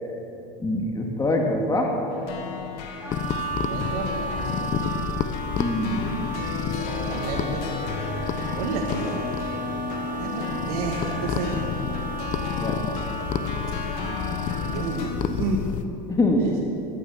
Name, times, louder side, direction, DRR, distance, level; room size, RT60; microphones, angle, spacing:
voice 1, 0.6-1.9 5.6-6.3 12.6-12.8 16.1-16.4, left 1 dB, 15° left, 1 dB, 2.1 m, -24 dB
sound 1, 2.1-15.1, left 5 dB, 70° left, 2.4 m, -35 dB
Wind instrument woodwind instrument, 3.0-15.1, right 3 dB, 10° right, 3.1 m, -35 dB
sound 2, 3.1-15.8, left 7 dB, 40° left, 1.0 m, -31 dB
voice 2, 3.6-4.7 6.8-7.7 8.6-9.3 10.1-11.6 13.8-15.6 16.3-16.5, right 3 dB, 75° right, -2 dB, 2.1 m, -31 dB
15.5 x 13.0 x 7.1 m, 2.8 s
supercardioid pair, 120°, 20 cm